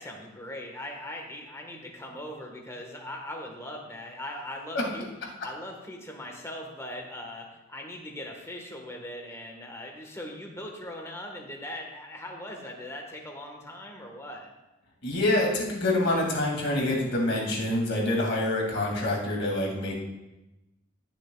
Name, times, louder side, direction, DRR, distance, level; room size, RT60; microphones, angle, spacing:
voice 1, 0.0-5.1 5.4-14.5, left 1 dB, 15° left, 1 dB, 1.4 m, -40 dB
voice 2, 15.0-20.0, left 1 dB, 60° left, -2 dB, 2.4 m, -26 dB
18.5 x 7.0 x 2.3 m, 0.99 s
head